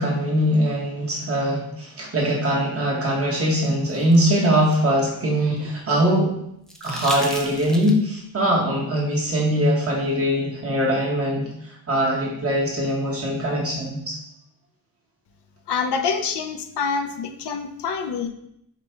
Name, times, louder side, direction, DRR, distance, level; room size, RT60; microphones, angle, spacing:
voice 1, 0.0-6.3 6.8-14.2, equal, 35° right, -3 dB, 1.2 m, -22 dB
sound 1, 3.5-5.8 6.7-8.2 9.9-10.0, equal, ahead, 0.5 m, -36 dB
voice 2, 15.7-18.3, left 5 dB, 85° left, 7 dB, 0.6 m, -26 dB
4.8 x 2.3 x 4.3 m, 0.75 s
wide cardioid pair, 150°, 40 cm